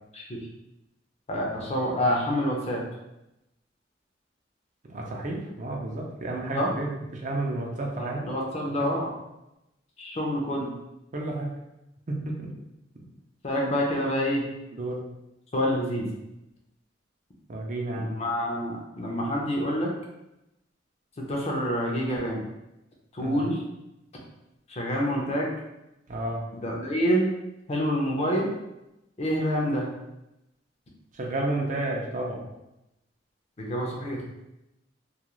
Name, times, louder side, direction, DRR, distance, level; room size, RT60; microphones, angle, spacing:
voice 1, 1.3-2.8 6.5-6.7 8.0-9.1 10.0-10.7 13.4-14.4 15.5-16.1 18.0-19.9 21.2-22.4 23.1-23.6 24.7-25.5 26.5-27.3 27.7-28.5 29.2-29.9 33.6-34.2, equal, 35° left, -2 dB, 0.5 m, -27 dB
voice 2, 4.9-8.2 11.1-11.5 12.1-12.5 14.7-15.0 17.5-18.1 23.2-23.5 26.1-26.4 31.1-32.5, right 2 dB, 45° right, -1 dB, 0.5 m, -31 dB
2.3 x 2.3 x 3.0 m, 0.91 s
head